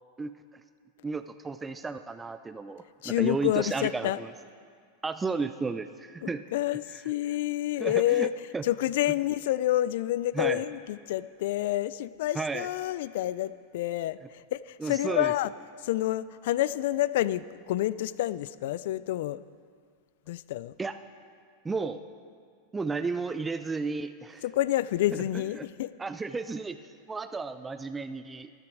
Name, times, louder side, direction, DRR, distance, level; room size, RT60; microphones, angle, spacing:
voice 1, 1.0-4.3 5.0-6.4 7.8-8.6 10.3-10.6 12.3-12.7 14.8-15.3 20.8-21.0 21.6-22.0 22.7-24.4 25.1-25.2 25.5-25.7 26.0-26.8 27.1-28.5, right 4 dB, 15° right, 10 dB, 0.4 m, -33 dB
voice 2, 3.0-4.2 6.2-8.3 8.6-15.5 15.8-19.4 20.3-20.7 24.4-25.9, left 14 dB, 70° left, 17 dB, 0.3 m, -28 dB
13.0 x 11.0 x 4.8 m, 2.1 s
hypercardioid pair, 115°, 0 cm